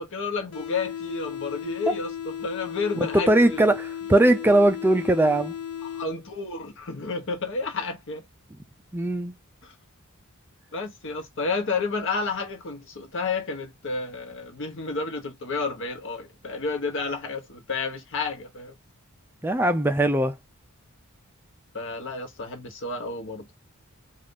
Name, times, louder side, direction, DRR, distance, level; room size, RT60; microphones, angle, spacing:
voice 1, 0.0-2.1 2.4-3.7 5.8-8.2 9.6-9.7 10.7-18.7 21.7-23.4, left 4 dB, 60° left, 0.9 m, -31 dB
sound 1, 0.5-6.5, left 9 dB, 85° left, 0.6 m, -35 dB
voice 2, 3.0-5.5 8.9-9.3 19.4-20.4, right 1 dB, 10° right, 0.3 m, -20 dB
2.6 x 2.3 x 3.5 m
head